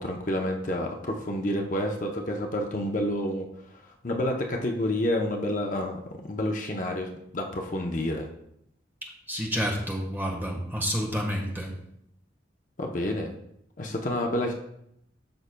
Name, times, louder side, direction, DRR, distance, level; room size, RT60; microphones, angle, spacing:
voice 1, 0.0-3.5 4.0-8.3 12.8-13.3 13.8-14.5, left 1 dB, 45° left, 2 dB, 0.7 m, -29 dB
voice 2, 9.0-11.8, equal, 10° right, -1 dB, 1.3 m, -30 dB
13.0 x 5.6 x 2.2 m, 0.78 s
head